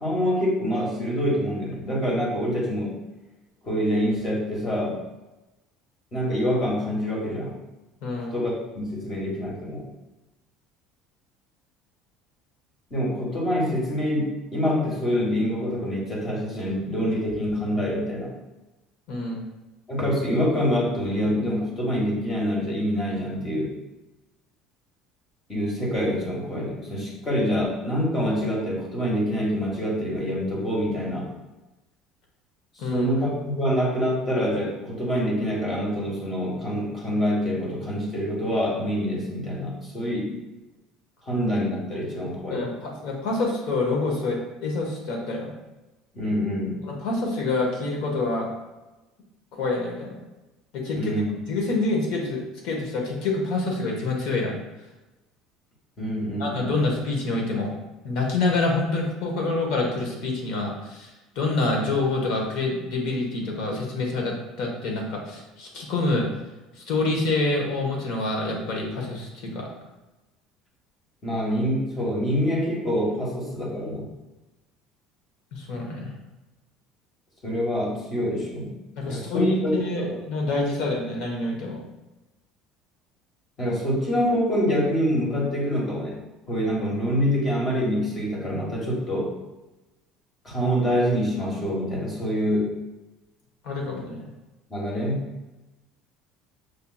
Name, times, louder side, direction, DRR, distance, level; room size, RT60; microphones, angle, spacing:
voice 1, 0.0-2.9 3.6-5.0 6.1-7.6 8.1-9.8 12.9-18.3 19.9-23.7 25.5-31.3 32.8-40.4 41.2-42.7 46.1-46.8 50.9-51.3 56.0-56.8 71.2-74.1 77.4-78.7 79.1-80.1 83.6-86.2 86.5-89.3 90.4-92.7 94.7-95.3, equal, 25° left, -3 dB, 1.4 m, -26 dB
voice 2, 8.0-8.3 19.1-19.4 32.8-33.1 42.5-45.5 46.8-48.5 49.5-50.2 50.7-51.1 51.5-54.6 56.4-57.7 58.0-66.2 66.8-69.7 75.5-76.1 79.0-81.8 93.6-94.3, left 2 dB, 65° left, 0 dB, 1.2 m, -27 dB
6.6 x 2.8 x 2.3 m, 1.1 s
cardioid pair, 140°, 0 cm